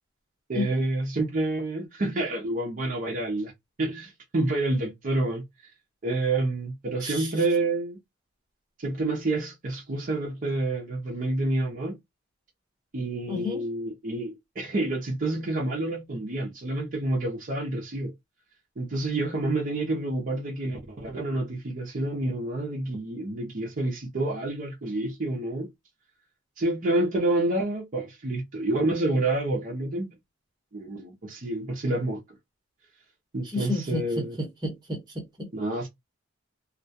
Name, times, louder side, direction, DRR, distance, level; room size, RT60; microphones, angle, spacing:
voice 1, 0.5-3.5 3.8-5.4 6.0-8.0 8.8-12.0 12.9-18.1 18.8-25.7 26.6-30.1 30.7-32.2 33.3-34.4 35.5-35.9, right 2 dB, 40° right, 0.6 m, -28 dB
voice 2, 13.3-13.6 33.5-35.5, left 2 dB, 20° right, 1.0 m, -32 dB
2.2 x 2.2 x 2.6 m
head